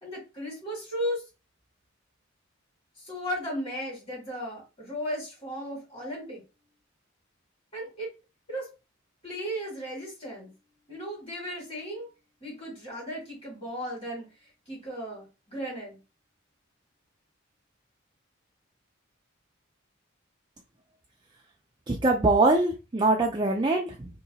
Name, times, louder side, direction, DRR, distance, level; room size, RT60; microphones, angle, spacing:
voice 1, 0.0-1.2 3.0-6.4 7.7-8.1 8.5-8.7 9.2-10.5 10.9-12.1 12.4-14.2 14.7-16.0, equal, 25° left, -3 dB, 1.7 m, -35 dB
voice 2, 21.9-24.1, right 2 dB, 20° right, 0 dB, 0.4 m, -23 dB
3.0 x 2.9 x 3.9 m, 0.29 s
head